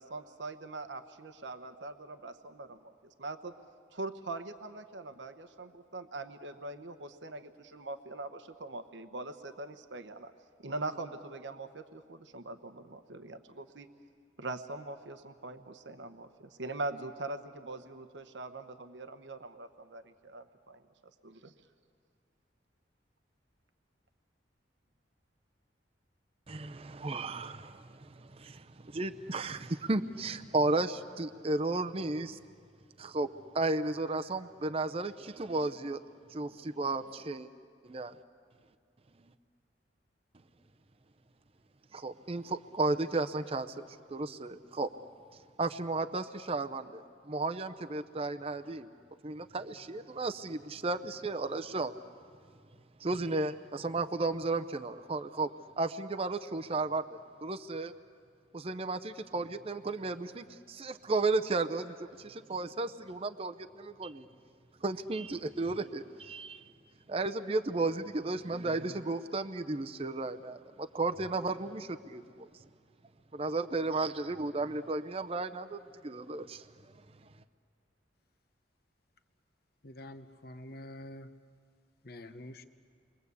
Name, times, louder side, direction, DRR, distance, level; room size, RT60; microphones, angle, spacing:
voice 1, 0.0-3.5 3.9-10.3 10.6-13.9 14.4-20.8 21.2-21.5, right 2 dB, 80° right, 9 dB, 1.0 m, -42 dB
voice 2, 26.5-32.4 33.0-36.0 36.3-37.5 37.8-38.1 41.9-44.9 45.6-48.9 49.2-51.9 53.0-57.9 58.5-64.3 64.8-66.6 67.1-72.5 73.3-76.6, right 3 dB, 30° right, 7 dB, 0.6 m, -34 dB
voice 3, 79.8-81.3 82.0-82.6, left 1 dB, 55° left, 10 dB, 1.0 m, -46 dB
29.5 x 23.0 x 8.3 m, 2.1 s
head